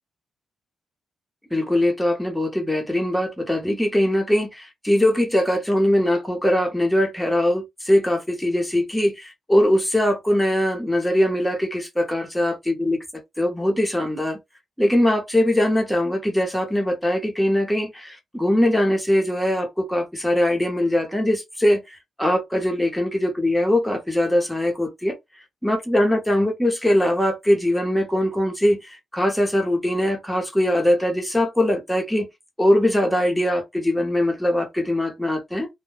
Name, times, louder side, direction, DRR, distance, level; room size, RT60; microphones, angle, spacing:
voice 1, 1.5-13.0 13.4-14.4 14.8-25.1 25.6-32.3 32.6-35.7, left 1 dB, 5° left, 0.8 m, -21 dB
2.2 x 2.1 x 3.2 m
cardioid pair, 120°, 0 cm